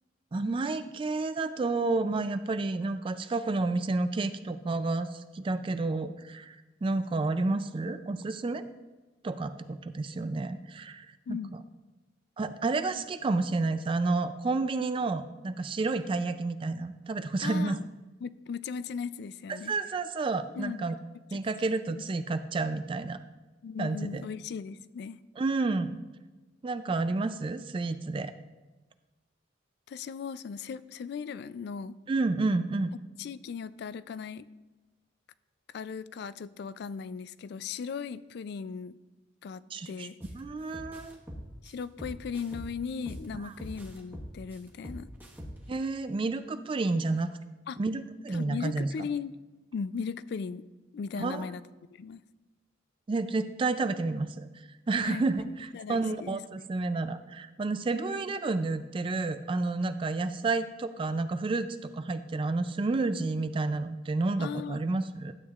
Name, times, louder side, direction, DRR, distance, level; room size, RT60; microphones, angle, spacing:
voice 1, 0.3-8.6 9.2-11.4 12.4-17.8 19.5-21.0 21.3-23.2 23.8-24.2 25.4-26.0 26.6-28.3 32.1-32.9 39.7-40.1 40.3-41.2 43.4-43.5 45.7-47.3 47.8-48.9 51.2-51.5 53.1-54.5 54.9-65.3, right 3 dB, 25° right, 11 dB, 0.3 m, -30 dB
voice 2, 17.4-17.8 18.2-19.7 20.6-20.9 23.6-25.2 29.9-31.9 33.2-34.5 35.7-38.9 39.4-40.2 41.6-45.1 47.7-47.8 48.3-49.4 49.7-50.6 50.9-51.6 51.9-52.2 55.0-55.3 55.7-56.4 64.4-64.8, left 6 dB, 60° left, 16 dB, 0.3 m, -37 dB
sound 1, 40.2-40.4 40.7-43.3 43.6-45.8, equal, 10° right, 1.2 m, -42 dB
12.0 x 8.2 x 2.4 m, 1.2 s
head